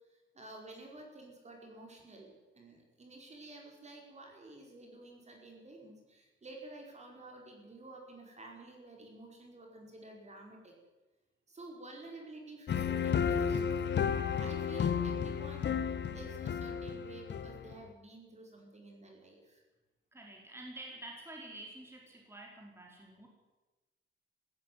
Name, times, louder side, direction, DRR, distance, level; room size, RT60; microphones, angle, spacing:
voice 1, 0.1-10.7 11.5-14.1 14.4-19.6, right 2 dB, 35° right, 1 dB, 5.1 m, -51 dB
sound 1, 12.7-17.9, left 7 dB, 60° left, 1.3 m, -33 dB
voice 2, 20.1-23.3, right 1 dB, 10° right, -1 dB, 4.7 m, -48 dB
18.5 x 16.5 x 9.5 m, 1.1 s
wide cardioid pair, 145°, 21 cm